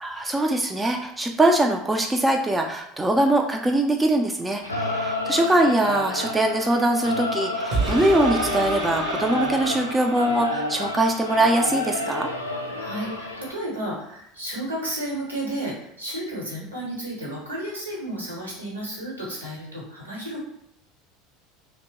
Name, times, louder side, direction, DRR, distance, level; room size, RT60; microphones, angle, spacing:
voice 1, 0.0-12.3, right 1 dB, 10° right, 3 dB, 0.3 m, -22 dB
Singing / Musical instrument, 4.6-13.5, left 1 dB, 90° left, 0.3 m, -30 dB
sound 1, 7.7-10.6 11.2-11.3, right 2 dB, 50° right, 0.7 m, -29 dB
voice 2, 12.7-20.4, right 1 dB, 80° right, -3 dB, 1.0 m, -32 dB
2.8 x 2.1 x 2.8 m, 0.77 s
figure-of-eight pair, 75°, 0 cm